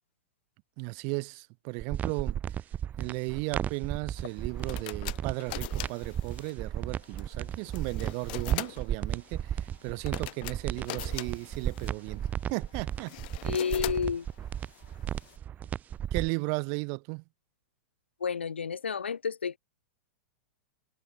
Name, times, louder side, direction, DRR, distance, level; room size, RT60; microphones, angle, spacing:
voice 1, 0.8-2.4 3.0-13.2 13.4-13.6 16.1-17.2, right 40 dB or more, 50° right, 3.4 m, -35 dB
sound 1, 1.8-16.3, right 10 dB, 25° right, 2.2 m, -34 dB
sound 2, 4.2-15.4, left 22 dB, 55° left, 2.5 m, -43 dB
voice 2, 13.4-14.3 18.2-19.6, left 6 dB, 85° left, 1.2 m, -30 dB
hypercardioid pair, 105°, 6 cm